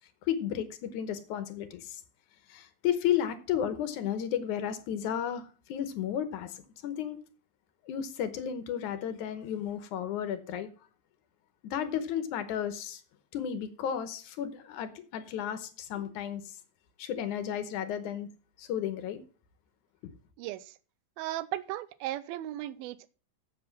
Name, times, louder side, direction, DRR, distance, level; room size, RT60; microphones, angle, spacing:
voice 1, 0.2-2.0 2.5-7.2 7.8-10.7 11.6-13.0 13.3-16.6 17.0-18.3 18.6-19.2 20.0-20.1, left 9 dB, 70° left, 2.1 m, -33 dB
voice 2, 21.2-23.1, right 14 dB, 90° right, 2.5 m, -36 dB
7.8 x 7.7 x 5.9 m
omnidirectional pair, 4.2 m